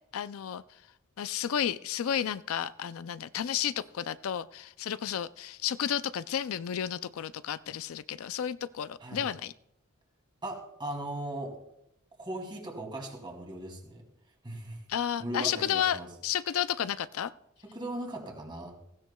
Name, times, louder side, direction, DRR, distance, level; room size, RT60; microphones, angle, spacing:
voice 1, 0.1-0.6 1.2-9.5 14.9-17.3, left 9 dB, 75° left, 14 dB, 0.4 m, -32 dB
voice 2, 10.4-11.5 12.2-14.0 14.4-14.8 15.2-16.1 17.7-18.7, right 1 dB, 20° right, 1 dB, 2.6 m, -38 dB
16.5 x 15.5 x 2.3 m, 0.80 s
head